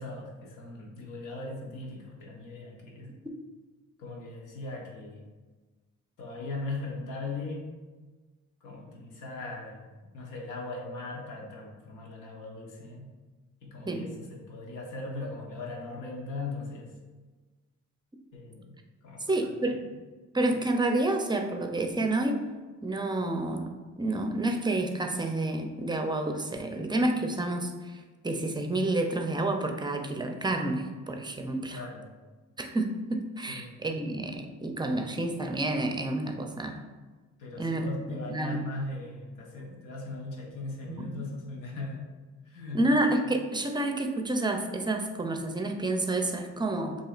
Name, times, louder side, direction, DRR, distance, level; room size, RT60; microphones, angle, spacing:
voice 1, 0.0-3.1 4.0-5.3 6.2-7.7 8.6-13.1 13.6-16.9 18.3-18.8 19.0-19.4 19.7-19.9 31.7-32.0 33.5-33.7 37.4-42.1 42.4-42.8, left 2 dB, 90° left, -1 dB, 1.1 m, -39 dB
voice 2, 19.3-19.8 20.3-22.4 22.8-31.8 32.6-36.8 37.6-38.6 40.9-41.3 42.7-47.0, right 2 dB, 15° right, 4 dB, 0.5 m, -29 dB
7.4 x 2.9 x 2.4 m, 1.3 s
cardioid pair, 90°, 30 cm